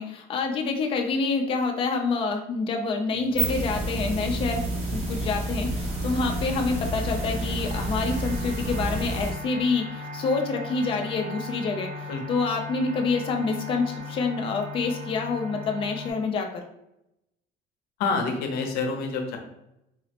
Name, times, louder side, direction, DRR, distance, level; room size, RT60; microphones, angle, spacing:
voice 1, 0.0-4.6 4.9-16.6, left 4 dB, 35° left, 3 dB, 0.4 m, -27 dB
sound 1, 3.1-9.3, right 1 dB, 40° right, 0.7 m, -29 dB
sound 2, 4.1-16.1, left 3 dB, 70° right, 1.5 m, -39 dB
voice 2, 18.0-19.4, left 4 dB, 70° left, 3 dB, 0.6 m, -27 dB
4.0 x 2.0 x 2.8 m, 0.85 s
cardioid pair, 160°, 17 cm